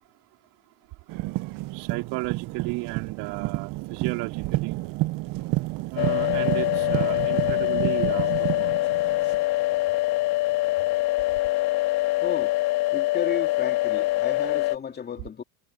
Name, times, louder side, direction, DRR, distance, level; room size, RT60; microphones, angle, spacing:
sound 1, 1.1-9.9 10.8-10.9, right 20 dB, 50° right, 0.6 m, -30 dB
voice 1, 1.7-4.8 5.9-8.8, right 23 dB, 65° right, 4.3 m, -34 dB
sound 2, 6.0-14.8, left 18 dB, 60° left, 1.7 m, -24 dB
voice 2, 12.2-12.5 12.9-15.4, left 7 dB, 20° left, 2.4 m, -33 dB
cardioid pair, 145°, 44 cm